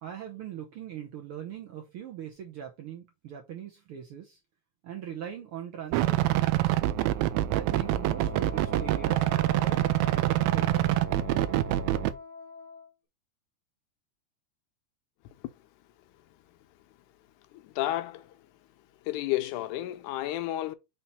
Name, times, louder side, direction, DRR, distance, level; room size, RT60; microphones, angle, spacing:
voice 1, 0.0-4.4 4.8-6.8 7.5-9.8 10.1-11.0, right 9 dB, 65° right, 1.4 m, -41 dB
sound 1, 5.9-12.1, right 14 dB, 80° right, 1.6 m, -26 dB
Wind instrument woodwind instrument, 7.7-12.9, left 4 dB, 60° left, 1.1 m, -43 dB
voice 2, 17.5-18.3 19.1-20.8, left 14 dB, 80° left, 2.1 m, -31 dB
5.7 x 3.1 x 5.4 m
omnidirectional pair, 3.5 m